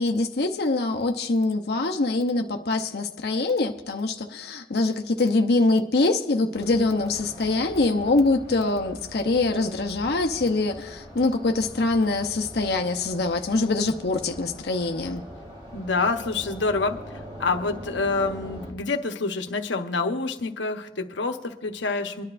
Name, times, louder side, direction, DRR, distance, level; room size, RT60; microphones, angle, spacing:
voice 1, 0.0-15.2, left 2 dB, 60° left, 3 dB, 0.7 m, -24 dB
sound 1, 6.6-18.7, equal, 30° right, 3.1 m, -42 dB
voice 2, 15.7-17.0 17.4-22.2, left 3 dB, 85° left, 5 dB, 1.0 m, -27 dB
25.5 x 11.0 x 2.5 m, 1.1 s
head